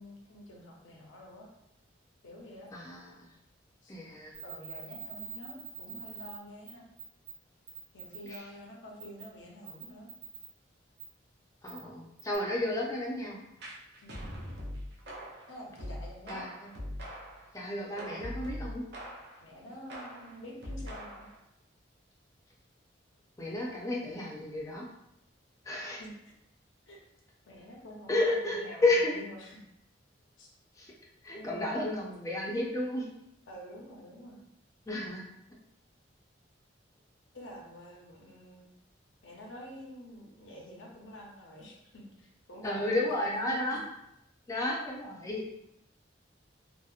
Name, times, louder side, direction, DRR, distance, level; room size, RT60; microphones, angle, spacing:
voice 1, 0.0-1.5 2.2-2.7 3.8-3.9 4.4-6.9 7.9-10.1 14.0-14.3 15.5-16.4 19.4-21.3 26.0-26.3 26.9-27.0 27.5-29.6 30.4-30.5 31.3-32.0 33.5-34.4 37.3-38.7 39.2-43.8, equal, 85° left, -2 dB, 0.6 m, -47 dB
voice 2, 2.7-3.3 3.9-4.3 8.3-8.4 11.6-13.4 16.3-16.7 17.5-18.8 23.4-24.9 25.6-26.0 28.1-29.1 30.8-30.9 31.2-33.0 34.9-35.3 42.6-43.8 44.5-45.4, left 2 dB, 20° left, -3 dB, 0.4 m, -32 dB
sound 1, 4.3-6.4 6.7-6.8 7.0-7.3 7.7-8.4 9.0-9.2 9.7-10.5 11.0-11.1 11.7-11.8 12.2-12.4, right 6 dB, 75° right, 0.9 m, -44 dB
sound 2, 13.6-17.5 18.0-19.4 19.9-21.4, equal, 60° right, 0.5 m, -42 dB
2.8 x 2.0 x 2.3 m, 0.82 s
head